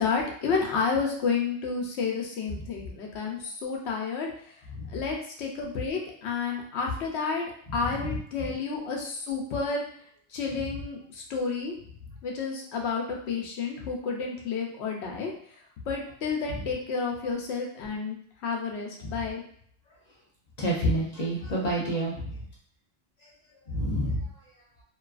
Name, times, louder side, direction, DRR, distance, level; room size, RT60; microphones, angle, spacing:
voice 1, 0.0-4.3 4.9-9.8 10.3-11.8 12.2-15.3 15.9-18.2 18.4-19.4, left 5 dB, 85° left, 0 dB, 0.9 m, -30 dB
voice 2, 20.6-22.2 23.7-24.2, right 1 dB, 45° left, -4 dB, 0.7 m, -27 dB
2.6 x 2.3 x 2.4 m, 0.63 s
omnidirectional pair, 1.1 m